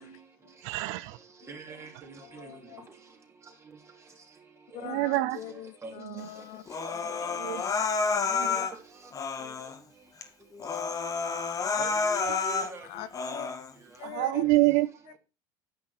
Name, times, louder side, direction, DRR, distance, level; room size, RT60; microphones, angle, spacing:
voice 1, 0.6-1.2 4.8-5.4 6.0-6.3 7.3-7.6 8.3-8.7 14.0-15.2, right 19 dB, 70° right, 0.5 m, -27 dB
voice 2, 1.5-2.5 4.8-4.9 5.8-5.9 10.5-10.6 11.8-12.9, right 3 dB, 25° right, 3.4 m, -42 dB
voice 3, 2.2-2.9 4.7-6.6 6.9-7.9 8.3-8.7 9.4-9.5 12.8-13.5 14.0-14.4, left 13 dB, 70° left, 1.0 m, -43 dB
Human voice, 6.7-8.7 9.1-9.8 10.2-10.3 10.6-12.7 13.1-13.7, left 4 dB, 30° left, 1.7 m, -30 dB
10.5 x 6.0 x 4.4 m
supercardioid pair, 110°, 12 cm